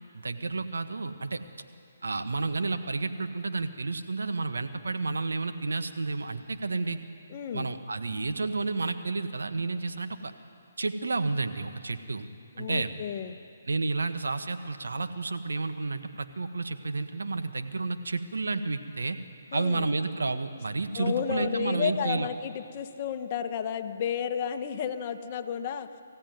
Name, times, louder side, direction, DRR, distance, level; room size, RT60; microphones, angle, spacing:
voice 1, 0.1-1.4 2.0-7.0 7.5-10.3 10.8-12.3 12.6-12.9 13.7-19.2 19.5-22.3, right 3 dB, 85° right, 8 dB, 1.5 m, -31 dB
voice 2, 7.3-7.7 12.6-13.4 19.5-19.9 20.9-25.9, left 8 dB, 35° left, 8 dB, 1.2 m, -32 dB
23.5 x 15.5 x 9.4 m, 2.6 s
hypercardioid pair, 155°, 0 cm